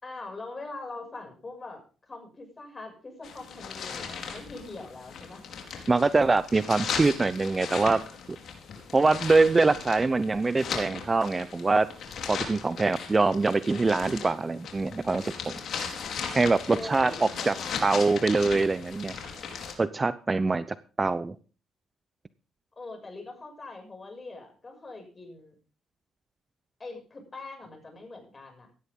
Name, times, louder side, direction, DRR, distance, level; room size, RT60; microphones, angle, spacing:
voice 1, 0.0-5.4 16.7-18.1 22.8-25.5 26.8-28.7, left 3 dB, 25° left, 4 dB, 6.8 m, -42 dB
sound 1, 3.2-19.7, left 6 dB, 65° left, 4.4 m, -37 dB
voice 2, 5.9-8.0 8.9-11.9 12.3-15.5 16.3-17.5 17.8-19.1 19.8-21.3, right 3 dB, 25° right, 14 dB, 0.7 m, -24 dB
17.0 x 12.5 x 3.8 m, 0.38 s
cardioid pair, 90°, 0 cm